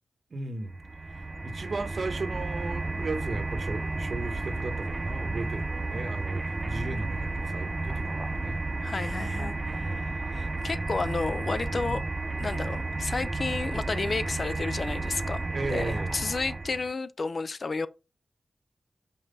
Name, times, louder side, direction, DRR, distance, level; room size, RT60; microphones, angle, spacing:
voice 1, 0.3-0.7 1.4-10.2 15.5-16.1, right 3 dB, 60° right, 1.1 m, -36 dB
sound 1, 0.7-16.9, right 2 dB, 30° right, 0.4 m, -32 dB
voice 2, 8.5-12.0 12.4-15.4 15.7-17.9, left 4 dB, 55° left, 0.5 m, -32 dB
5.6 x 4.6 x 5.3 m
wide cardioid pair, 95°, 0 cm